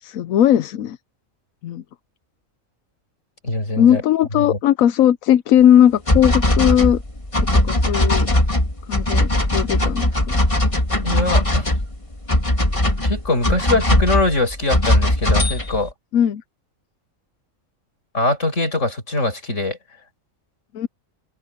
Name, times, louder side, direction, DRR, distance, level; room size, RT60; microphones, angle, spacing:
voice 1, 0.0-1.0 1.6-1.8 3.8-7.0 7.5-8.3 8.9-10.4 16.1-16.4 20.7-20.9, left 10 dB, 80° left, 1.1 m, -17 dB
voice 2, 3.4-4.0 4.4-4.6 11.0-11.7 13.0-15.9 18.1-19.8, left 2 dB, 60° left, 6.9 m, -22 dB
sound 1, 6.1-15.9, left 1 dB, 25° left, 2.4 m, -19 dB
open air
omnidirectional pair, 1.4 m